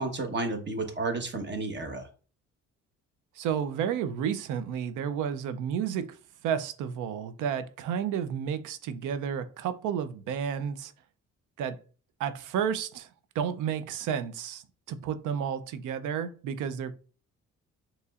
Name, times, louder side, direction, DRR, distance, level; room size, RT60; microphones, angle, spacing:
voice 1, 0.0-2.1, right 3 dB, 35° right, 1.1 m, -32 dB
voice 2, 3.4-6.2 6.4-10.9 11.6-11.8 12.2-13.1 13.3-17.0, right 8 dB, 85° right, 0.5 m, -31 dB
5.5 x 3.0 x 2.4 m
cardioid pair, 90°, 30 cm